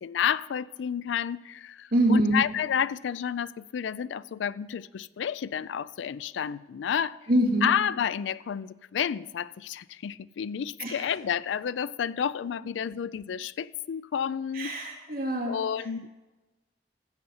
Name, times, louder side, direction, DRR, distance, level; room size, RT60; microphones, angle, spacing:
voice 1, 0.0-7.2 7.6-14.7 15.5-16.1, left 8 dB, 85° left, 0.4 m, -30 dB
voice 2, 1.9-2.4 7.3-7.7 10.8-11.1 14.5-15.6, right 1 dB, 55° right, 2.5 m, -24 dB
15.0 x 7.8 x 5.6 m
head